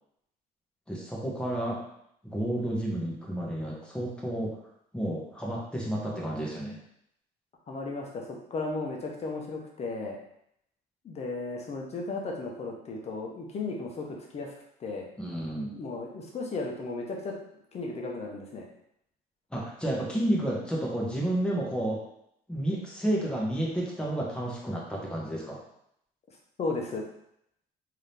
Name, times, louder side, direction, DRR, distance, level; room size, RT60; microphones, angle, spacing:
voice 1, 0.9-1.8 2.2-4.6 4.9-6.8 15.2-15.8 19.5-22.0 22.5-25.6, right 1 dB, 5° left, -4 dB, 1.2 m, -31 dB
voice 2, 7.7-10.2 11.0-14.5 14.8-15.1 15.7-17.3 17.7-18.7 26.6-27.0, left 3 dB, 40° left, 0 dB, 0.9 m, -35 dB
3.6 x 2.8 x 3.4 m, 0.74 s
cardioid pair, 110°, 17 cm